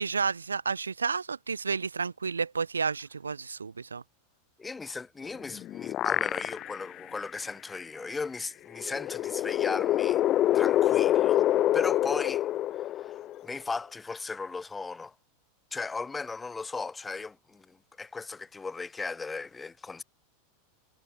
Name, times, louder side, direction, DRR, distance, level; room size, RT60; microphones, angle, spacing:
voice 1, 0.0-4.0, right 5 dB, 85° right, 0.7 m, -31 dB
voice 2, 4.6-10.2 10.5-11.4 11.7-12.4 12.8-13.1 13.4-15.1 15.7-20.0, left 4 dB, 15° left, 4.1 m, -37 dB
sound 1, 5.3-6.9 7.4-7.5 8.8-13.5, left 13 dB, 40° left, 1.2 m, -26 dB
figure-of-eight pair, 90°, 0 cm